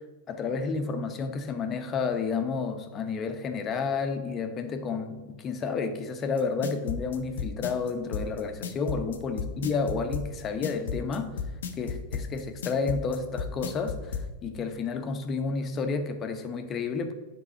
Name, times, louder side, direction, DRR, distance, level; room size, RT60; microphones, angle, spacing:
voice 1, 0.3-11.3 11.8-17.1, left 4 dB, 30° left, 7 dB, 1.0 m, -31 dB
sound 1, 6.4-14.3, left 6 dB, 80° left, 0.8 m, -33 dB
9.7 x 4.0 x 5.2 m, 1.2 s
hypercardioid pair, 110°, 0 cm